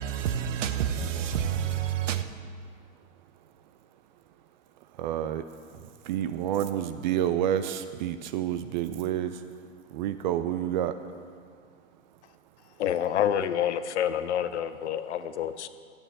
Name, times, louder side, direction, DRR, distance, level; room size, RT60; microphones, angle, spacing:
voice 1, 0.0-2.2, right 9 dB, 60° right, 1.1 m, -28 dB
voice 2, 5.0-5.5 6.1-9.4 9.9-11.0, right 10 dB, 35° right, 0.5 m, -29 dB
voice 3, 12.8-15.7, left 9 dB, 55° left, 0.8 m, -28 dB
14.0 x 9.0 x 6.0 m
figure-of-eight pair, 105°, 41 cm